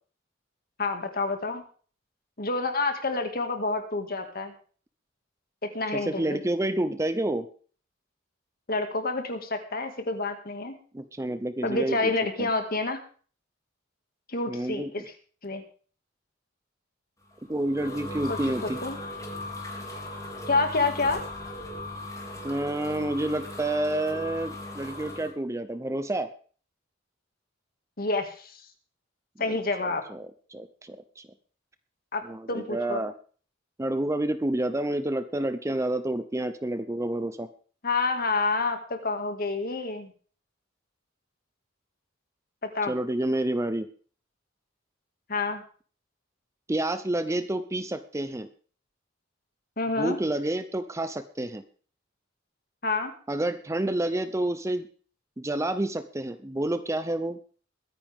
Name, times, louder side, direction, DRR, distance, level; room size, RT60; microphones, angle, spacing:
voice 1, 0.8-1.6 2.4-4.5 5.6-6.4 8.7-10.8 11.6-13.0 14.3-15.0 15.4-15.6 18.3-19.0 20.5-21.3 28.0-28.6 29.4-30.0 32.1-32.2 32.5-33.0 37.8-40.1 42.6-42.9 45.3-45.6 49.8-50.2 52.8-53.1, left 3 dB, 50° left, 6 dB, 2.1 m, -28 dB
voice 2, 5.9-7.5 10.9-12.1 12.4-12.5 14.5-15.0 17.5-18.8 22.4-26.3 29.4-29.5 30.1-31.3 32.2-33.1 33.8-37.5 42.9-43.9 46.7-48.5 50.0-51.6 53.3-54.9 55.4-57.4, right 1 dB, 15° right, 11 dB, 0.7 m, -29 dB
sound 1, 17.3-25.3, left 1 dB, 15° left, 3.3 m, -38 dB
22.0 x 10.0 x 3.6 m, 0.42 s
head